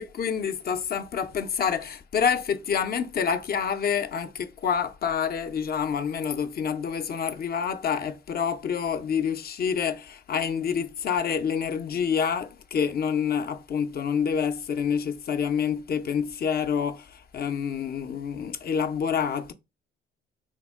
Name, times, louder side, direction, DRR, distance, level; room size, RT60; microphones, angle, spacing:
voice 1, 0.0-19.5, left 7 dB, 50° left, 0.5 m, -27 dB
3.2 x 2.1 x 3.4 m
cardioid pair, 90°, 20 cm